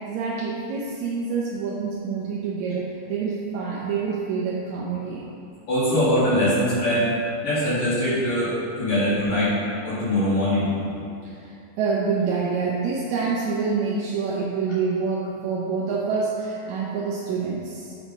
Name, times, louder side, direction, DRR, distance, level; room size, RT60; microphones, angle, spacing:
voice 1, 0.0-5.3 11.2-17.9, right 5 dB, 70° right, -5 dB, 1.8 m, -27 dB
voice 2, 5.7-7.1 7.4-9.6 9.8-10.7, equal, 55° left, -10 dB, 3.0 m, -22 dB
8.8 x 5.0 x 5.4 m, 2.5 s
omnidirectional pair, 4.1 m